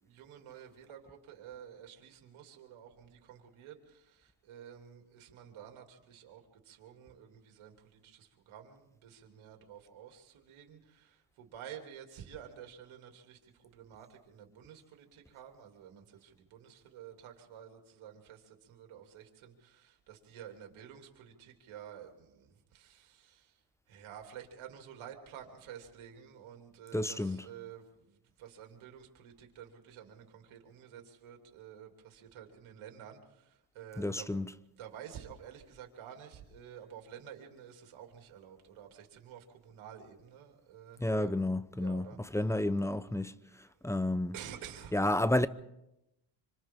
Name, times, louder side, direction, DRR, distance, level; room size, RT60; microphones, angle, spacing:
voice 1, 0.0-23.6 23.9-34.3 34.8-41.4 41.8-42.2 44.3-45.0, right 9 dB, 85° right, 3.2 m, -51 dB
voice 2, 26.9-27.4 34.0-34.5 41.0-44.3 44.9-45.5, left 1 dB, 5° left, 0.7 m, -31 dB
26.5 x 25.5 x 3.8 m
cardioid pair, 90°, 47 cm